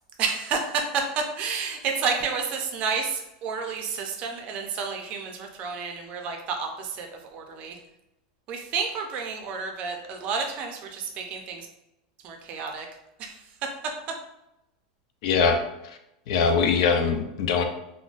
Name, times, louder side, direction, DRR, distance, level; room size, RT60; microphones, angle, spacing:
voice 1, 0.2-7.8 8.5-11.7 12.2-12.9 13.2-13.4, right 5 dB, 35° right, 3 dB, 0.5 m, -30 dB
voice 2, 15.2-16.0 16.3-17.6, left 5 dB, 60° left, 6 dB, 0.5 m, -23 dB
3.8 x 2.1 x 2.4 m, 0.88 s
supercardioid pair, 155°, 4 cm